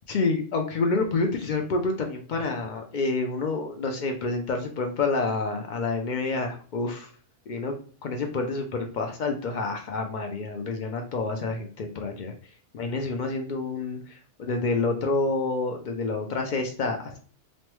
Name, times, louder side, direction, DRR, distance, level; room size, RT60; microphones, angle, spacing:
voice 1, 0.1-7.1 7.5-12.3 12.7-17.2, left 3 dB, 60° left, 4 dB, 0.5 m, -28 dB
3.1 x 2.1 x 3.0 m, 0.43 s
omnidirectional pair, 1.2 m